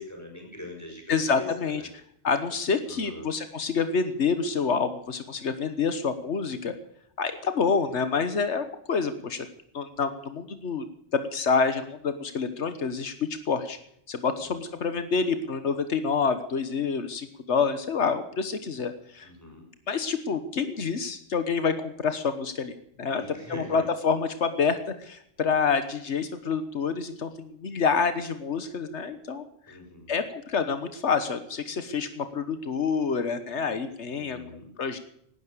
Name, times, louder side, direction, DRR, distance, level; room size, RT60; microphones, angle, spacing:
voice 1, 0.0-1.9 2.9-3.3 14.4-14.5 19.2-19.7 23.0-23.9 29.7-30.1 34.1-34.7, left 2 dB, 15° left, 1 dB, 6.1 m, -42 dB
voice 2, 1.1-1.8 2.2-6.7 7.2-9.5 9.7-10.8 11.1-13.8 14.1-19.3 19.9-23.2 23.5-29.8 30.1-34.4 34.8-35.0, left 5 dB, 85° left, 10 dB, 1.5 m, -27 dB
18.0 x 10.5 x 6.7 m, 0.70 s
omnidirectional pair, 1.1 m